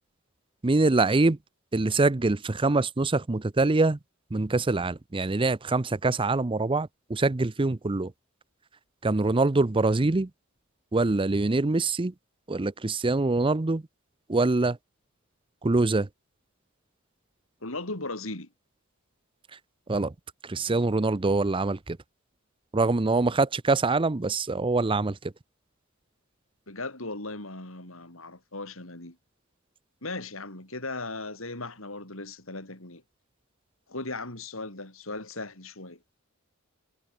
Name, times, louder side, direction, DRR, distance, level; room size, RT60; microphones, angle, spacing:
voice 1, 0.6-1.4 1.7-4.0 4.3-8.1 9.0-10.3 10.9-12.1 12.5-13.8 14.3-14.8 15.6-16.1 19.9-20.1 20.5-22.0 22.7-25.1, right 3 dB, 25° right, 0.6 m, -24 dB
voice 2, 17.6-18.5 26.7-29.2 30.0-33.0 33.9-36.0, left 2 dB, 75° left, 5.5 m, -37 dB
head